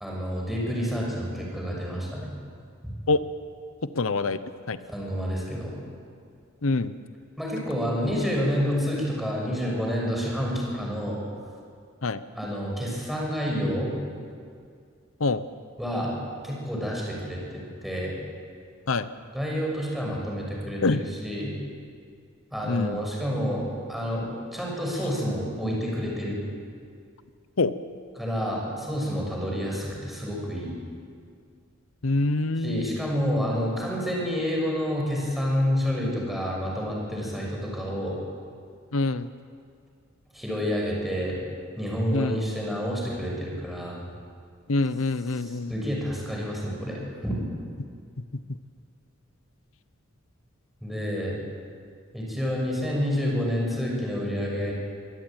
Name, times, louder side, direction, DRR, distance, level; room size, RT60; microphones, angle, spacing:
voice 1, 0.0-2.3 2.8-2.9 4.9-5.8 7.4-11.2 12.3-13.9 15.8-16.2 16.4-18.1 19.3-21.6 22.5-26.4 28.2-30.8 32.6-38.2 40.3-41.4 41.8-44.0 45.3-47.4 50.8-51.4 52.1-54.7, equal, ahead, -3 dB, 6.5 m, -29 dB
voice 2, 3.8-4.4 4.7-4.8 6.6-6.9 12.0-12.2 15.2-15.4 18.9-19.1 20.8-21.0 22.6-23.0 27.6-27.7 32.0-32.9 38.9-39.3 42.1-42.4 44.7-45.7, left 3 dB, 85° left, 13 dB, 0.8 m, -25 dB
25.0 x 17.0 x 9.0 m, 2.2 s
head